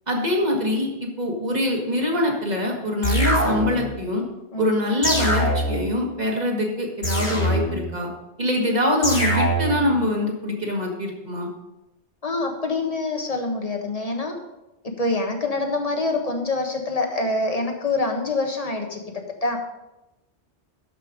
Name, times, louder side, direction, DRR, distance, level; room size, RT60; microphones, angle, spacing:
voice 1, 0.1-4.2 4.6-8.1 8.4-11.5, left 1 dB, 35° right, 0 dB, 2.1 m, -24 dB
sound 1, 3.0-3.9 5.0-5.9 7.0-7.9 9.0-9.9, right 1 dB, 60° left, 3.4 m, -23 dB
voice 2, 12.2-14.3 15.0-19.0 19.4-19.6, left 2 dB, 35° left, 3 dB, 1.4 m, -25 dB
12.5 x 5.6 x 5.1 m, 0.97 s
omnidirectional pair, 1.2 m